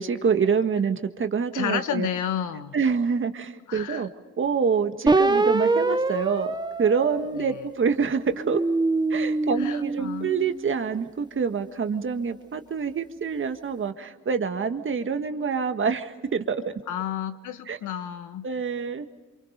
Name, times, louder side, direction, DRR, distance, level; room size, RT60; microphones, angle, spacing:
voice 1, 0.0-2.1 2.7-4.1 4.4-8.6 9.1-16.7 17.7-17.8 18.4-19.1, right 6 dB, 40° right, 8 dB, 1.8 m, -26 dB
voice 2, 1.5-2.8 3.7-4.1 7.4-7.7 9.6-10.3 16.9-18.5, left 9 dB, 80° left, 10 dB, 1.5 m, -31 dB
sound 1, 5.1-7.8 8.3-10.8, right 3 dB, 15° right, 1.1 m, -25 dB
27.5 x 25.0 x 5.2 m, 1.3 s
cardioid pair, 90°, 30 cm